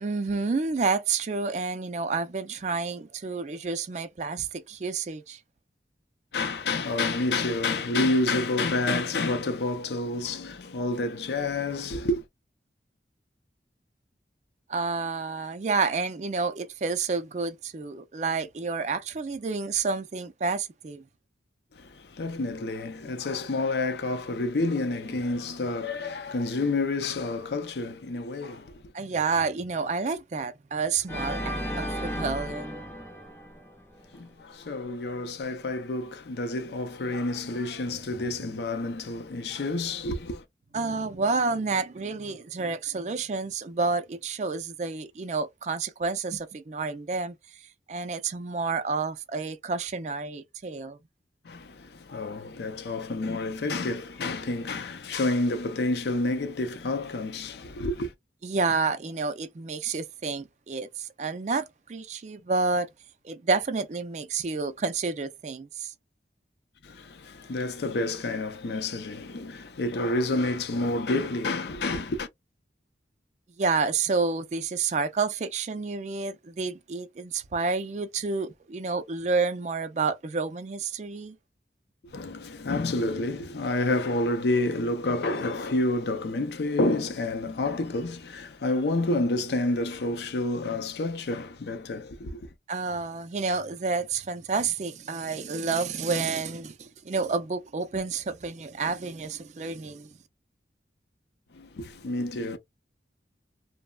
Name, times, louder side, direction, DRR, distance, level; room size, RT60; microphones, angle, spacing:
voice 1, 0.0-5.4 14.7-21.0 28.9-32.8 40.7-47.4 47.9-51.0 58.4-62.9 63.2-65.9 73.6-81.4 92.7-100.1, right 4 dB, 40° right, 0.4 m, -29 dB
voice 2, 6.3-12.2 21.7-28.8 34.1-40.4 51.4-58.1 66.8-72.3 82.0-92.5 101.5-102.6, left 2 dB, 65° left, 0.5 m, -29 dB
Organ, 31.1-34.2, equal, 15° left, 0.5 m, -34 dB
3.0 x 2.1 x 2.3 m
head